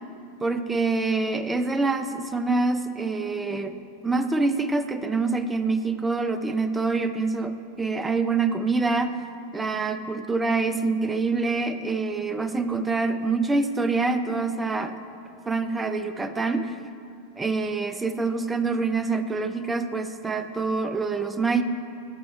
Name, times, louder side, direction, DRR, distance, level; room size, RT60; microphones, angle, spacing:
voice 1, 0.4-3.8 4.0-9.2 9.5-15.0 15.5-16.8 17.4-21.6, right 3 dB, 10° right, 10 dB, 0.4 m, -26 dB
11.0 x 4.1 x 4.5 m, 2.7 s
figure-of-eight pair, 90°, 0 cm